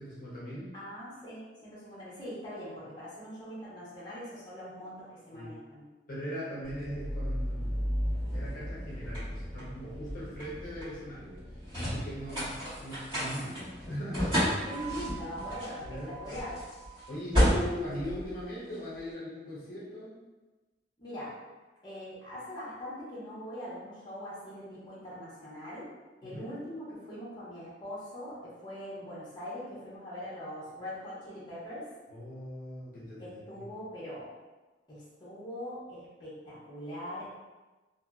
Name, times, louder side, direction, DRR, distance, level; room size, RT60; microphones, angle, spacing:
voice 1, 0.0-0.7 5.3-5.5 6.1-7.9 8.3-12.5 12.8-14.4 15.8-16.4 17.1-20.1 26.2-26.4 32.1-33.6, equal, 55° left, -8 dB, 0.8 m, -40 dB
voice 2, 0.7-5.8 12.3-12.4 14.6-16.6 21.0-21.3 21.8-25.9 26.2-31.9 33.2-34.3 34.9-37.3, equal, 25° left, -9 dB, 0.9 m, -42 dB
sound 1, 6.6-19.0, equal, 30° right, 1.5 m, -33 dB
2.6 x 2.6 x 2.3 m, 1.2 s
head